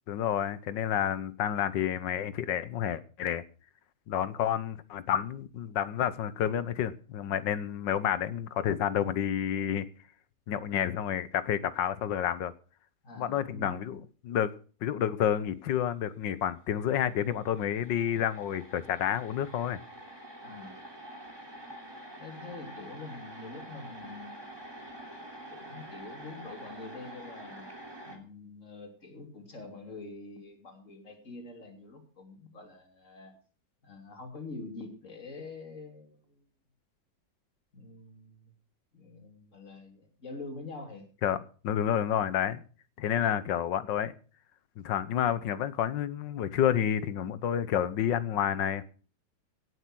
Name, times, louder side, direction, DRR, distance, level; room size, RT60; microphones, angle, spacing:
voice 1, 0.1-3.4 4.1-9.9 10.5-12.5 13.2-14.5 14.8-19.8 41.2-41.4 41.6-42.6 43.0-44.1 44.8-48.8, left 9 dB, 80° left, 1.7 m, -29 dB
voice 2, 13.0-13.9 20.4-20.8 22.2-24.5 25.5-27.7 28.0-33.4 33.8-36.4 37.7-38.5 38.9-41.1, left 3 dB, 40° left, 3.4 m, -45 dB
sound 1, 16.8-16.9 17.1-28.2, right 1 dB, 15° right, 2.9 m, -47 dB
18.0 x 8.0 x 6.2 m
omnidirectional pair, 2.0 m